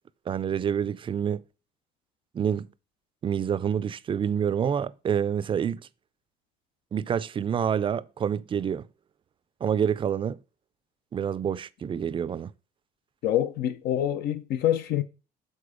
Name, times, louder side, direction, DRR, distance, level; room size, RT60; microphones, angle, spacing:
voice 1, 0.3-1.4 2.3-2.7 3.2-5.8 6.9-8.9 9.6-10.4 11.1-12.5, right 8 dB, 30° right, 0.4 m, -27 dB
voice 2, 13.2-15.0, left 11 dB, 70° left, 0.6 m, -26 dB
6.9 x 4.2 x 5.0 m
cardioid pair, 110°, 17 cm